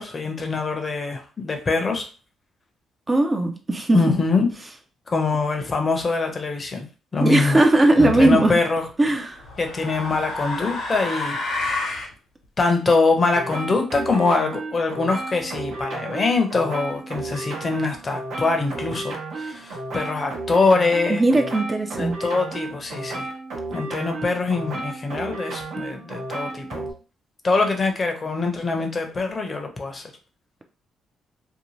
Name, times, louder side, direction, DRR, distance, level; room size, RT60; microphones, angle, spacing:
voice 1, 0.0-2.0 3.9-4.5 5.1-6.9 7.1-7.6 8.0-8.8 9.6-11.7 12.6-21.2 22.0-23.3 23.7-26.9 27.4-30.0, left 3 dB, 35° left, 0.6 m, -23 dB
voice 2, 3.1-4.2 7.2-8.6 9.0-9.4 21.1-22.2, right 2 dB, 25° right, 0.4 m, -18 dB
sound 1, 8.0-8.4 9.4-12.1, left 2 dB, 80° left, 0.8 m, -29 dB
sound 2, 13.3-26.9, right 2 dB, 75° right, 0.9 m, -33 dB
2.7 x 2.2 x 3.0 m
cardioid pair, 90°, 0 cm